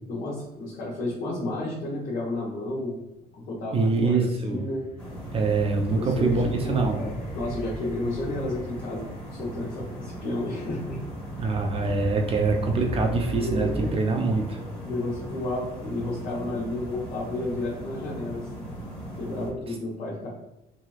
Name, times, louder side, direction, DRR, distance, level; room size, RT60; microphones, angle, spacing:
voice 1, 0.1-3.0 3.5-4.8 5.9-9.1 9.4-11.0 11.8-11.9 13.4-14.0 14.8-18.7 19.2-20.3, left 2 dB, 65° left, -7 dB, 0.9 m, -32 dB
voice 2, 3.7-4.6 5.3-7.0 11.4-14.6, right 3 dB, 35° right, 2 dB, 0.4 m, -24 dB
sound 1, 3.8-13.9, left 1 dB, 45° left, 0.6 m, -39 dB
sound 2, 5.0-19.5, right 1 dB, 5° left, 1.2 m, -39 dB
2.9 x 2.7 x 2.3 m, 0.91 s
cardioid pair, 110°, 17 cm